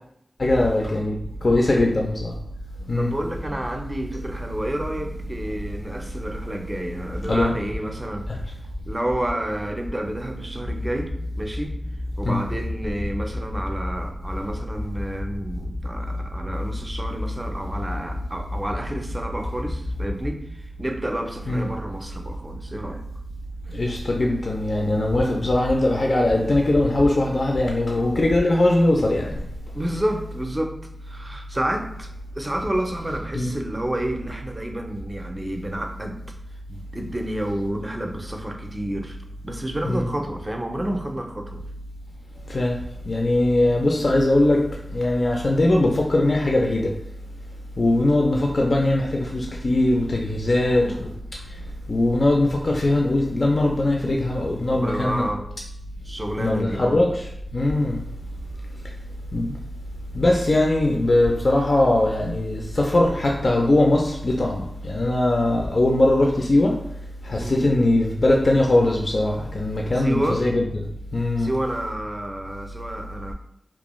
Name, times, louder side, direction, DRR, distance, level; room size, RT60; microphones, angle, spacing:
voice 1, 0.4-2.3 2.9-3.1 3.5-3.6 6.0-6.1 7.3-7.5 8.3-8.4 12.2-12.4 21.5-21.7 23.7-29.4 33.3-33.5 39.9-40.1 42.5-42.8 43.1-47.0 47.8-51.1 51.5-51.6 51.9-55.3 56.4-58.0 59.3-59.6 60.1-66.8 67.2-71.5, left 1 dB, 60° left, 0 dB, 0.3 m, -21 dB
voice 2, 3.0-8.3 8.8-11.8 12.2-23.0 29.7-30.8 31.0-32.1 32.3-36.2 36.7-39.2 39.4-41.6 50.6-51.0 54.7-55.5 56.1-57.0 67.4-67.7 70.0-70.4 71.4-73.3, right 1 dB, 25° right, 4 dB, 0.4 m, -30 dB
2.4 x 2.2 x 2.9 m, 0.74 s
cardioid pair, 40°, 0 cm